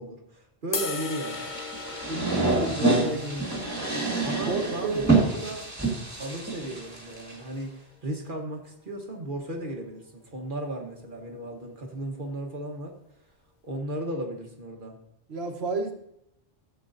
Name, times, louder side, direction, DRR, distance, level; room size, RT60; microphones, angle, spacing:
voice 1, 0.0-1.5 1.9-3.6 4.2-5.7 6.2-13.0 13.6-15.0, right 1 dB, 50° right, 2 dB, 1.3 m, -35 dB
sound 1, 0.7-7.0, left 4 dB, 45° left, 0.9 m, -39 dB
sound 2, 1.2-7.3, right 3 dB, 15° right, 1.8 m, -27 dB
voice 2, 4.5-5.1 15.3-15.9, right 4 dB, 65° right, 4 dB, 1.4 m, -30 dB
13.5 x 7.8 x 2.6 m, 0.79 s
omnidirectional pair, 1.1 m